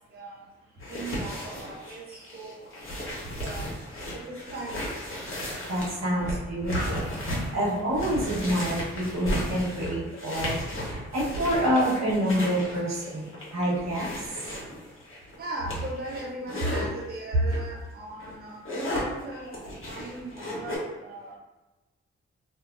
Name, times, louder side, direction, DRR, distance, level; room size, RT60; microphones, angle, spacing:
voice 1, 0.1-0.4 0.9-2.6 3.3-3.7 4.1-4.8 8.7-8.8 15.4-18.6 18.9-21.3, right 2 dB, 35° right, -3 dB, 0.6 m, -38 dB
sound 1, 0.8-16.9 17.5-17.7 18.1-20.8, equal, 45° left, 1.2 m, -35 dB
voice 2, 5.7-10.6 10.8-14.1, equal, 65° right, -6 dB, 1.2 m, -27 dB
2.6 x 2.5 x 2.5 m, 1.1 s
supercardioid pair, 40°, 29 cm